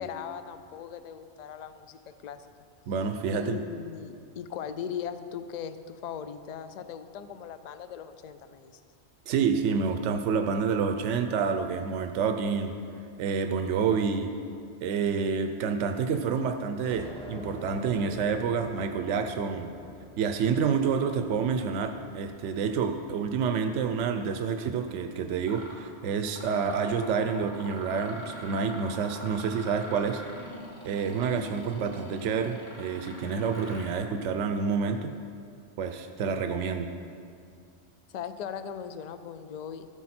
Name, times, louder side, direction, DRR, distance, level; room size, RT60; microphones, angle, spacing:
voice 1, 0.0-2.5 3.3-8.8 38.1-39.9, left 8 dB, 55° left, 11 dB, 0.5 m, -39 dB
voice 2, 2.9-3.6 9.3-12.7 13.2-14.3 14.8-19.7 20.2-30.2 30.8-35.1 35.8-36.9, right 6 dB, 85° right, 7 dB, 0.9 m, -28 dB
sound 1, 16.4-22.8, equal, 5° left, 1.0 m, -47 dB
Mechanisms, 24.8-24.9 25.4-25.8 26.3-34.1, left 1 dB, 25° left, 1.3 m, -44 dB
13.5 x 8.2 x 4.3 m, 2.4 s
omnidirectional pair, 1.2 m